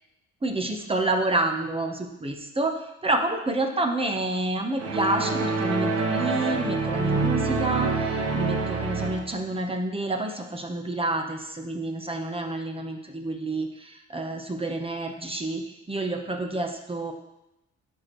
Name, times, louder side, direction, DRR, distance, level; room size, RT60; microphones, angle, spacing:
voice 1, 0.4-2.8 3.0-17.1, right 2 dB, 20° right, 4 dB, 1.0 m, -28 dB
sound 1, 4.8-9.4, right 3 dB, 55° right, 1.1 m, -26 dB
11.5 x 4.5 x 3.2 m, 0.91 s
cardioid pair, 90°, 30 cm